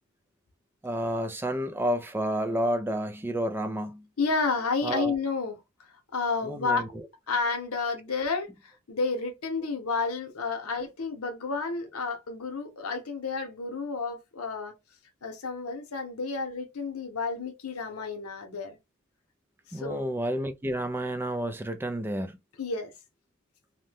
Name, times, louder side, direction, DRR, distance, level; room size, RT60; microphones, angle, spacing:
voice 1, 0.8-4.1 4.8-5.1 6.4-6.9 19.7-22.4, right 1 dB, 10° right, 0.3 m, -30 dB
voice 2, 4.2-5.6 6.1-6.8 7.3-14.7 15.2-18.8 19.7-20.1 22.6-22.9, left 4 dB, 85° left, 0.8 m, -31 dB
2.6 x 2.1 x 3.3 m
head